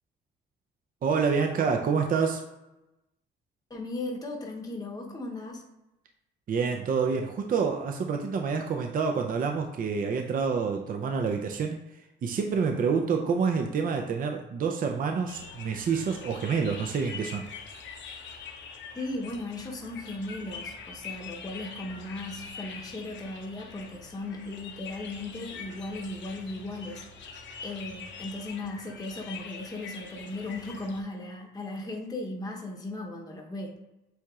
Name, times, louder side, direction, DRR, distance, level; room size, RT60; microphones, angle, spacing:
voice 1, 1.0-2.4 6.5-11.8 12.2-17.5, right 5 dB, 45° right, 3 dB, 0.5 m, -27 dB
voice 2, 3.7-5.6 18.9-33.8, left 2 dB, 20° left, 0 dB, 0.8 m, -37 dB
sound 1, 15.3-31.0, left 5 dB, 65° left, 0.7 m, -44 dB
7.7 x 2.8 x 2.3 m, 0.96 s
cardioid pair, 90°, 20 cm